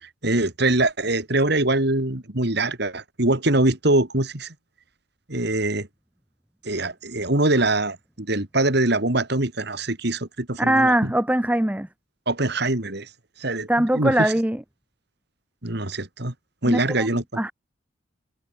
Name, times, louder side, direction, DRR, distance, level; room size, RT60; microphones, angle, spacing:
voice 1, 0.0-4.5 5.3-5.9 6.6-11.1 12.3-13.1 13.4-14.3 15.6-16.3 16.6-17.4, right 2 dB, 55° right, 2.8 m, -23 dB
voice 2, 10.6-11.9 13.7-14.6 16.7-17.1 17.3-17.5, right 1 dB, 5° right, 0.7 m, -21 dB
head